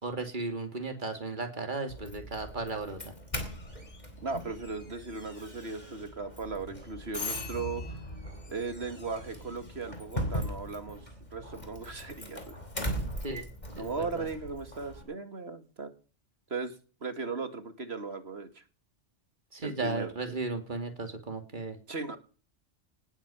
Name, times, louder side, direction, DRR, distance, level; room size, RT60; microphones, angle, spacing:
voice 1, 0.0-3.1 13.2-13.5 13.7-14.3 19.5-21.8, right 3 dB, 45° right, 5 dB, 2.9 m, -35 dB
Doorbell, 1.9-15.0, equal, 40° left, 4.3 m, -39 dB
voice 2, 4.2-8.0 8.5-11.0 11.3-12.6 13.8-15.9 16.5-16.8 17.0-18.6 19.6-20.4 21.9-22.2, right 4 dB, 65° right, 9 dB, 2.3 m, -37 dB
19.0 x 8.8 x 7.1 m, 0.38 s
omnidirectional pair, 1.2 m